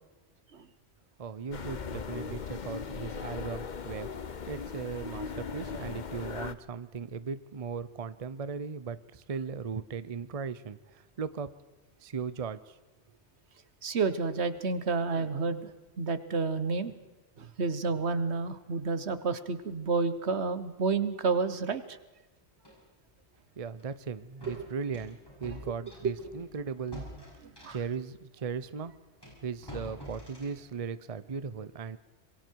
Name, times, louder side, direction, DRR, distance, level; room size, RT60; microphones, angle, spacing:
voice 1, 1.2-4.1 4.5-11.5 12.0-12.8 23.6-27.1 27.7-29.0 29.4-32.0, right 5 dB, 35° right, 15 dB, 0.8 m, -37 dB
sound 1, 1.5-6.5, left 6 dB, 45° left, 1.0 m, -38 dB
voice 2, 13.8-15.7 16.0-16.9 17.4-22.0 26.0-26.1 27.4-27.8, right 4 dB, 75° right, 12 dB, 1.5 m, -30 dB
sound 2, 22.6-22.8 23.8-23.9 24.4-28.0 28.7-28.8 29.2-30.6, left 1 dB, 20° left, 8.2 m, -47 dB
26.0 x 22.5 x 4.7 m, 1.2 s
omnidirectional pair, 1.1 m